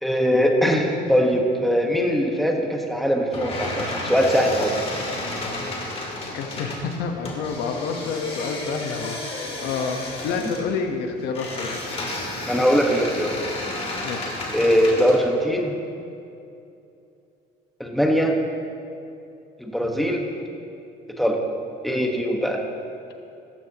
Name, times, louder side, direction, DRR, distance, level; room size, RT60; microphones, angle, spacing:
voice 1, 0.0-4.7 12.5-13.4 14.5-15.7 17.8-18.4 19.6-20.3 21.2-21.4 21.8-22.6, equal, ahead, 1 dB, 1.4 m, -21 dB
sound 1, 3.3-15.2, left 2 dB, 35° left, 2.8 m, -32 dB
voice 2, 6.3-9.2 9.6-11.8 14.0-14.4, left 5 dB, 85° left, 4 dB, 1.2 m, -29 dB
15.5 x 14.0 x 3.0 m, 2.6 s
cardioid pair, 110°, 17 cm